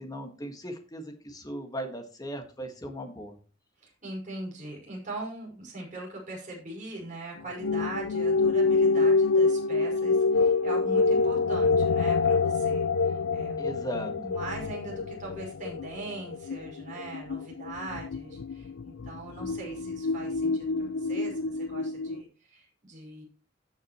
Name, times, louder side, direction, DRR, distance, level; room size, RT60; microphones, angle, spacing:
voice 1, 0.0-3.3 13.6-14.1, equal, 20° left, 5 dB, 1.6 m, -37 dB
voice 2, 3.8-13.7 14.1-23.2, right 2 dB, 40° right, -2 dB, 5.5 m, -41 dB
sound 1, 7.6-22.2, left 4 dB, 90° left, 0.5 m, -26 dB
17.0 x 6.4 x 3.0 m, 0.36 s
head